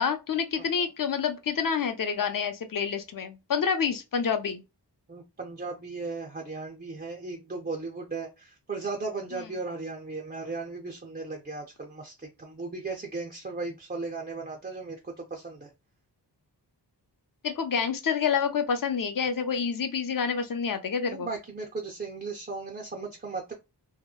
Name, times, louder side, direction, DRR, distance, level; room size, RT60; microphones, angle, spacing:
voice 1, 0.0-4.6 17.4-21.3, left 6 dB, 50° left, 0.5 m, -28 dB
voice 2, 5.1-15.7 21.1-23.5, right 3 dB, 25° right, 0.4 m, -36 dB
2.8 x 2.1 x 2.3 m
wide cardioid pair, 85°, 42 cm